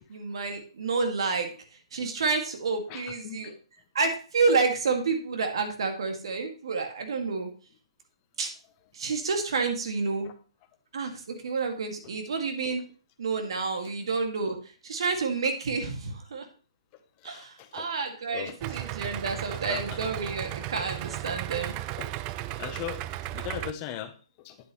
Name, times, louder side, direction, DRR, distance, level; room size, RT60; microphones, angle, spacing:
voice 1, 0.1-1.5 1.9-3.5 3.9-7.5 8.4-8.5 8.9-10.3 10.9-12.8 13.2-14.6 14.8-16.5 17.2-21.8, right 4 dB, 60° right, 4 dB, 2.1 m, -29 dB
voice 2, 2.9-3.5 10.2-10.3 17.2-17.9 18.3-18.8 19.5-20.0 22.0-22.1 22.6-23.0 23.3-24.6, left 11 dB, 30° left, 9 dB, 0.8 m, -39 dB
Idling, 18.6-23.7, right 15 dB, 25° right, 0.3 m, -35 dB
9.4 x 8.0 x 3.1 m, 0.37 s
hypercardioid pair, 140°, 3 cm